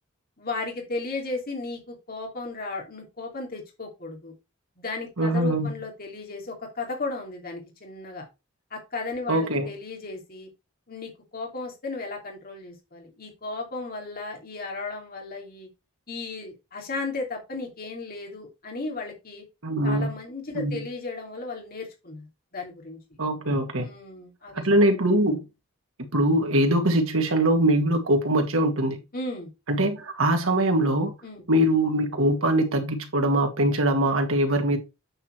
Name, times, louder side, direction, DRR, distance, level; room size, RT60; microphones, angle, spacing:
voice 1, 0.4-4.3 4.8-8.3 8.7-10.5 10.9-15.7 16.1-19.4 19.8-22.3 22.5-23.0 23.8-24.7 29.1-29.5 31.2-31.4, left 3 dB, 45° left, 2.8 m, -35 dB
voice 2, 5.2-5.7 9.3-9.7 19.6-20.1 20.5-20.8 23.2-23.9 24.5-25.4 26.1-29.0 29.7-31.1 31.5-34.8, right 1 dB, 85° right, 2.0 m, -22 dB
8.9 x 4.5 x 4.5 m
head